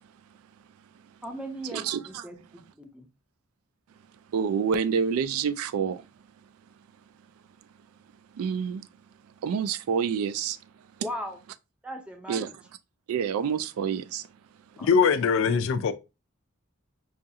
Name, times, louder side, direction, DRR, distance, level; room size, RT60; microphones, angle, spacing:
voice 1, 1.2-2.4 2.8-3.1 11.0-11.4 11.8-12.5 14.8-14.9, equal, 5° right, 0.5 m, -37 dB
voice 2, 4.3-6.0 8.4-8.8 9.4-10.6 12.3-12.5 13.1-14.3, right 6 dB, 85° right, 0.3 m, -27 dB
voice 3, 14.8-15.9, left 6 dB, 65° left, 0.4 m, -22 dB
4.8 x 2.4 x 2.7 m
head